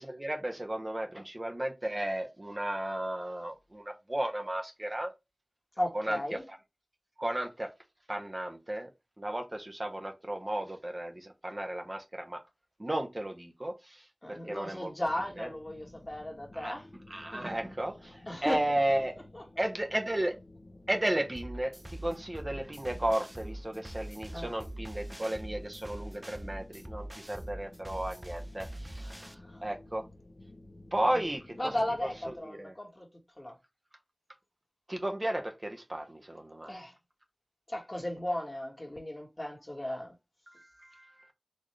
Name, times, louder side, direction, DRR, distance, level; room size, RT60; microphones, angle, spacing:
voice 1, 0.0-5.1 5.9-6.2 7.2-7.7 8.1-8.9 9.2-12.4 12.8-14.0 14.3-14.9 15.4-15.5 16.6-16.7 17.1-19.1 19.6-20.4 20.9-29.2 29.6-30.0 30.9-31.7 32.3-32.7 34.9-36.7 40.9-41.1, right 1 dB, 40° right, 0.9 m, -34 dB
voice 2, 5.8-6.4 14.2-16.9 17.3-17.5 18.3-18.6 19.3-19.6 24.3-24.6 29.0-29.6 31.0-33.1 33.4-33.5 36.7-36.9 37.7-40.1, left 1 dB, 35° left, 1.4 m, -36 dB
sound 1, 15.0-32.4, left 2 dB, 65° left, 0.8 m, -53 dB
sound 2, 21.3-29.3, right 1 dB, 20° right, 0.4 m, -43 dB
4.3 x 2.4 x 3.2 m
wide cardioid pair, 40°, 0 cm